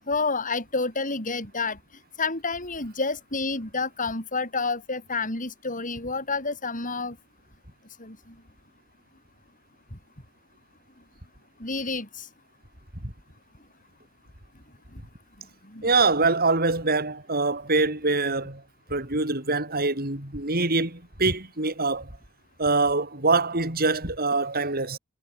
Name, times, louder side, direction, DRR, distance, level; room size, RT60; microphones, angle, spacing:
voice 1, 0.1-1.8 2.2-7.2 8.0-8.3 11.6-12.3 14.9-15.0 15.6-15.9, left 3 dB, 40° left, 7.7 m, -29 dB
voice 2, 15.8-18.6 18.9-22.1 22.6-25.0, right 3 dB, 45° right, 5.9 m, -24 dB
head